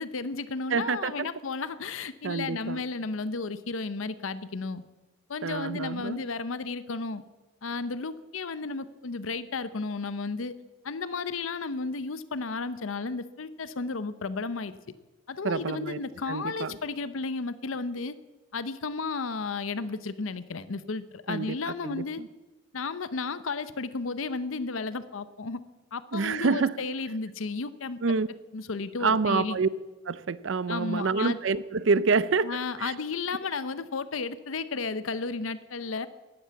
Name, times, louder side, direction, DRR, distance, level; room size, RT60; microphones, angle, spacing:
voice 1, 0.0-4.8 5.3-7.2 7.6-10.5 10.8-14.8 15.3-18.2 18.5-22.2 22.7-25.6 25.9-28.0 28.5-29.6 30.7-31.4 32.4-36.1, left 4 dB, 90° left, 15 dB, 0.7 m, -33 dB
voice 2, 0.7-1.3 2.2-2.8 5.4-6.2 15.4-16.0 16.3-16.8 21.3-22.3 26.1-26.7 28.0-28.3 29.0-29.7 30.0-32.5 32.8-32.9, right 4 dB, 70° right, 18 dB, 0.5 m, -27 dB
14.0 x 11.0 x 8.3 m, 1.1 s
head